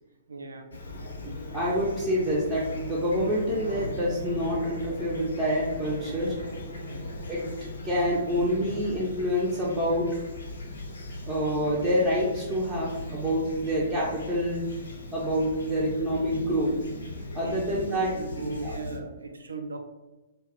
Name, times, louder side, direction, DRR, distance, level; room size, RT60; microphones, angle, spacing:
voice 1, 0.3-0.7 6.9-7.1 17.4-17.6 18.1-19.8, right 3 dB, 70° right, 4 dB, 0.4 m, -38 dB
Fowl / Chirp tweet, 0.7-19.0, left 1 dB, 65° left, 0.5 m, -38 dB
voice 2, 1.2-6.4 7.3-7.5 7.8-10.2 11.3-14.6 15.1-16.7 17.3-18.8, equal, 10° right, -8 dB, 0.5 m, -27 dB
2.3 x 2.0 x 3.6 m, 1.1 s
figure-of-eight pair, 115°, 0 cm